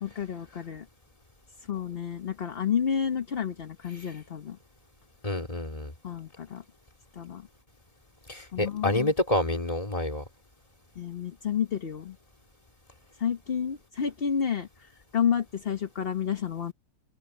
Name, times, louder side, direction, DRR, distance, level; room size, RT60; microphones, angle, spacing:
voice 1, 0.0-0.8 1.7-4.6 6.0-6.6 7.2-7.4 8.5-9.1 11.0-12.1 13.2-16.7, left 8 dB, 40° left, 1.0 m, -30 dB
voice 2, 5.2-5.9 8.3-10.2, left 1 dB, 20° left, 2.5 m, -28 dB
omnidirectional pair, 2.0 m